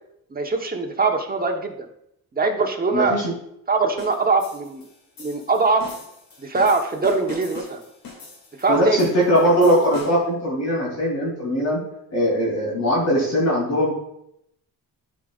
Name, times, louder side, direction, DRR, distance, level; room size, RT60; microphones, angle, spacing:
voice 1, 0.3-1.9 2.3-3.2 3.7-4.8 5.2-5.9 6.4-7.8 8.6-9.0, right 4 dB, 25° right, 2 dB, 1.1 m, -22 dB
voice 2, 2.9-3.3 8.7-11.8 12.1-13.9, equal, 45° left, -4 dB, 3.1 m, -20 dB
sound 1, 4.0-10.4, left 4 dB, 70° left, 2.5 m, -42 dB
12.0 x 5.1 x 2.5 m, 0.77 s
cardioid pair, 105°, 37 cm